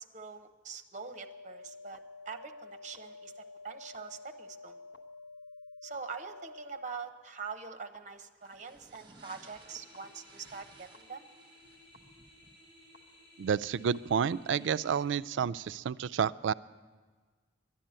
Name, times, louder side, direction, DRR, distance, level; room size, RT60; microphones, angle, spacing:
voice 1, 0.0-2.0 2.3-4.8 5.8-11.2, right 5 dB, 40° right, 7 dB, 0.8 m, -44 dB
sound 1, 0.9-7.0 7.9-8.0 8.9-9.0 9.9-10.0 10.9-11.0 11.9-12.0 12.9-13.0 13.9-14.0, left 3 dB, 75° left, 1.0 m, -50 dB
sound 2, 8.4-14.4, right 3 dB, 25° right, 1.3 m, -59 dB
sound 3, 9.5-15.0, left 1 dB, 25° left, 4.0 m, -58 dB
voice 2, 13.4-16.5, right 7 dB, 85° right, 16 dB, 0.3 m, -30 dB
11.5 x 10.5 x 8.8 m, 1.4 s
head